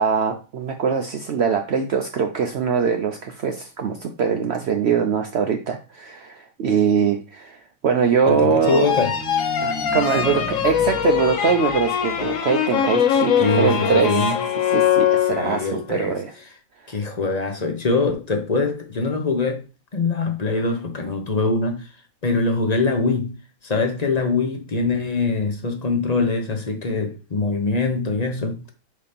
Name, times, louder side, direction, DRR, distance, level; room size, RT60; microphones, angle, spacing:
voice 1, 0.0-8.9 9.6-14.3 14.7-16.3 16.8-16.9, right 6 dB, 60° right, 0.8 m, -22 dB
voice 2, 8.3-9.2 13.4-14.4 15.3-16.2 16.9-19.6 19.9-21.9 22.2-23.4 23.6-28.7, left 3 dB, 35° left, 0.8 m, -23 dB
sound 1, 8.5-12.8, equal, 5° left, 0.9 m, -37 dB
sound 2, 8.6-15.8, left 8 dB, 70° left, 1.2 m, -22 dB
6.5 x 2.8 x 5.2 m
omnidirectional pair, 1.5 m